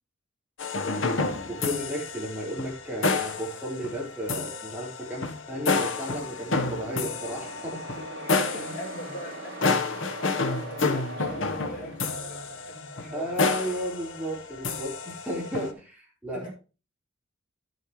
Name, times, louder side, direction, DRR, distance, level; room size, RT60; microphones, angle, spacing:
sound 1, 0.6-15.7, left 3 dB, 70° left, 1.2 m, -30 dB
voice 1, 1.5-8.0 8.5-8.7 13.1-16.5, equal, 10° right, 4.4 m, -34 dB
sound 2, 5.5-12.5, right 2 dB, 55° right, 3.6 m, -42 dB
voice 2, 8.1-13.3 16.3-16.5, equal, 40° left, 6.5 m, -43 dB
11.0 x 8.1 x 3.2 m
head